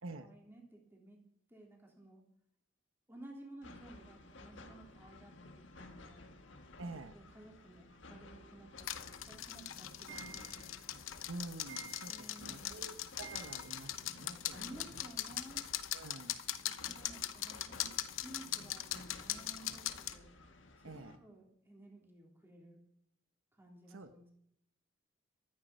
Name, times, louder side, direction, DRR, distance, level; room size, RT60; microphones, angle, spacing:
voice 1, 0.2-1.2 1.5-2.2 3.1-6.3 6.8-8.9 9.2-10.8 12.1-12.8 14.5-15.6 16.8-17.9 18.2-20.3 20.8-22.8 23.5-24.3, right 1 dB, 10° right, 0 dB, 3.5 m, -55 dB
sound 1, 3.6-21.2, left 2 dB, 70° left, 1.7 m, -55 dB
voice 2, 6.8-7.1 11.3-14.6 14.9-15.0 15.9-16.3 20.8-21.2 23.9-24.1, right 2 dB, 85° right, 9 dB, 1.1 m, -48 dB
sound 2, 8.8-20.2, left 12 dB, 85° left, 0.9 m, -41 dB
Clock, 9.1-14.2 14.5-14.6 14.8-14.9 15.1-15.2 16.4-16.5 17.1-17.2 17.7-17.8 18.3-18.4 19.0-19.1 19.6-19.7, right 6 dB, 60° right, 2.4 m, -54 dB
14.5 x 13.5 x 5.4 m, 0.73 s
head